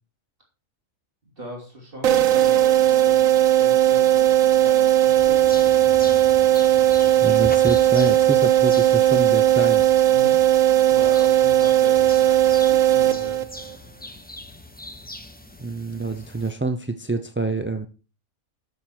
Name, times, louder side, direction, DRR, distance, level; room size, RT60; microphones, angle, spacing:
voice 1, 1.2-5.5 10.1-13.4, equal, 40° right, -1 dB, 3.4 m, -39 dB
sound 1, 2.0-13.7, right 12 dB, 80° right, 1.2 m, -17 dB
sound 2, 5.2-16.5, left 1 dB, 10° left, 0.9 m, -41 dB
voice 2, 7.2-9.8 15.6-17.9, right 3 dB, 15° right, 8 dB, 0.4 m, -26 dB
13.0 x 6.8 x 4.5 m, 0.33 s
omnidirectional pair, 1.4 m